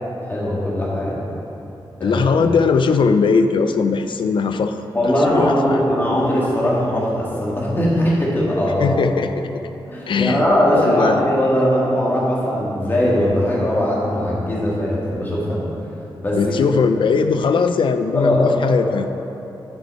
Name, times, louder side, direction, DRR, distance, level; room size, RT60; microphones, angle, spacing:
voice 1, 0.2-1.2 2.0-2.2 4.9-9.0 9.9-15.6 16.2-16.5 18.1-18.5 18.8-18.9, equal, 25° left, -5 dB, 1.8 m, -20 dB
voice 2, 2.0-4.8 5.0-5.8 8.8-9.3 10.1-10.4 10.7-11.2 16.3-19.1, left 5 dB, 70° left, 9 dB, 0.4 m, -19 dB
11.0 x 6.1 x 4.2 m, 2.9 s
wide cardioid pair, 155°, 9 cm